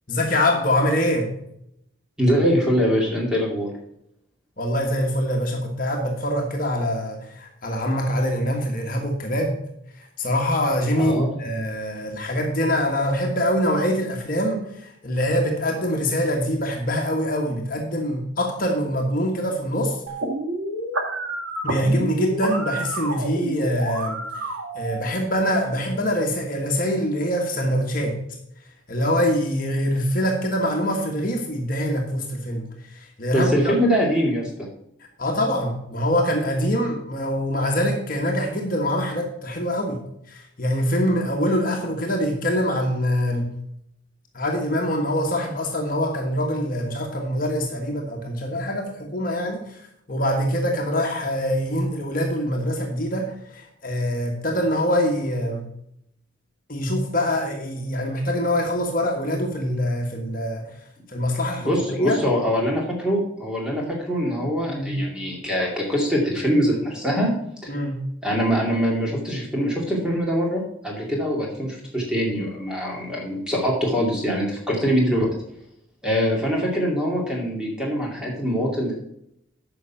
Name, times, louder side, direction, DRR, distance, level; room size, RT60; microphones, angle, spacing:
voice 1, 0.1-1.3 4.6-9.6 10.2-20.0 21.6-24.4 24.7-28.2 28.9-32.6 32.9-33.8 35.2-40.0 40.3-43.5 44.3-49.8 50.1-55.6 56.7-60.7 61.1-62.2 64.7-64.9 67.7-68.0, equal, 45° left, 1 dB, 1.4 m, -24 dB
voice 2, 2.2-3.7 10.9-11.3 33.3-34.7 61.6-67.3 67.6-67.7 68.2-75.3 76.0-78.9, equal, 5° right, -3 dB, 2.3 m, -23 dB
sound 1, 20.1-25.1, right 2 dB, 85° right, 1.6 m, -29 dB
9.4 x 5.9 x 5.7 m, 0.76 s
head